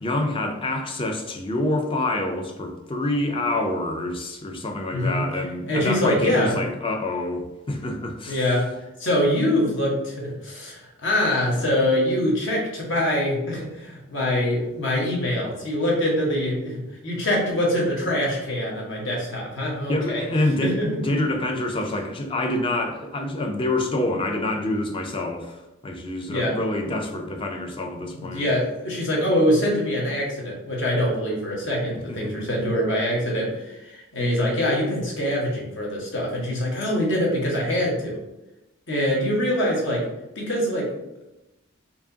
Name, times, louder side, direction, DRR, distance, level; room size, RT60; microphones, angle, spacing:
voice 1, 0.0-8.5 19.9-28.5 32.1-32.8, left 1 dB, 25° left, 4 dB, 0.4 m, -27 dB
voice 2, 4.9-5.3 5.7-6.6 8.3-8.7 9.0-20.2 20.6-20.9 26.2-26.5 28.0-38.2 38.9-40.0 40.3-40.9, left 1 dB, 65° left, -3 dB, 1.2 m, -24 dB
4.6 x 2.8 x 2.7 m, 0.96 s
head